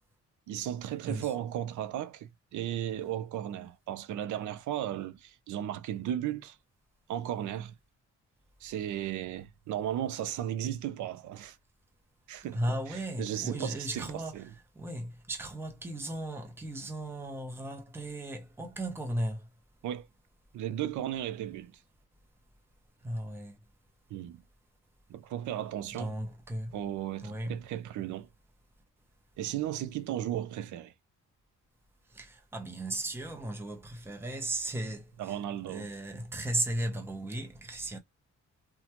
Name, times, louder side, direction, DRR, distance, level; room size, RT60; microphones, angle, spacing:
voice 1, 0.5-6.6 7.1-7.7 8.6-11.6 12.3-12.6 12.9-14.0 14.3-14.5 19.8-20.1 20.5-21.7 24.1-24.4 25.1-26.1 26.7-28.3 29.4-30.9 35.2-35.9, right 11 dB, 75° right, 0.6 m, -35 dB
voice 2, 12.5-19.5 23.0-23.6 26.0-26.8 27.2-27.6 32.1-35.4 35.7-38.0, right 1 dB, 10° right, 0.8 m, -36 dB
2.8 x 2.3 x 2.9 m
cardioid pair, 90°, 30 cm